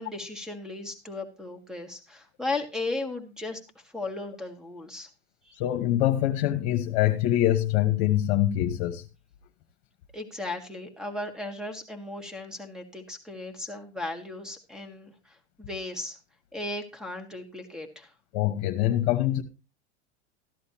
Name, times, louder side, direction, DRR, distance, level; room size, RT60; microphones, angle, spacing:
voice 1, 0.0-5.1 5.4-5.6 10.1-16.2 16.5-18.1, left 2 dB, ahead, 1.7 m, -36 dB
voice 2, 5.6-9.0 18.3-19.4, left 13 dB, 50° left, 1.3 m, -24 dB
14.0 x 11.0 x 2.9 m
supercardioid pair, 135°, 35 cm